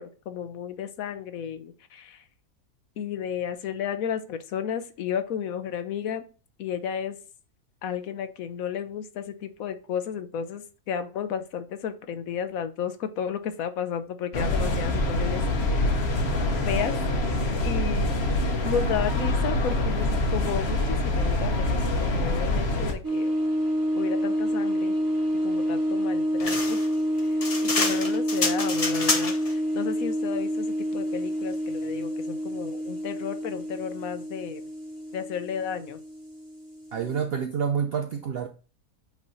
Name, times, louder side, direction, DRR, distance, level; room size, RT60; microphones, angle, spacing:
voice 1, 0.0-2.2 3.0-6.2 6.6-7.2 7.8-16.0 16.7-17.2 17.6-18.1 18.6-23.3 24.0-24.9 25.4-26.8 27.6-30.7 30.9-34.6 35.1-36.0, left 8 dB, 70° left, 1.1 m, -33 dB
sound 1, 14.3-22.9, left 1 dB, 50° left, 1.2 m, -25 dB
sound 2, 23.0-37.2, equal, 15° right, 2.0 m, -28 dB
sound 3, 26.4-29.5, left 3 dB, 30° left, 0.7 m, -28 dB
voice 2, 36.9-38.5, right 7 dB, 70° right, 0.5 m, -28 dB
8.1 x 3.3 x 3.9 m
omnidirectional pair, 1.6 m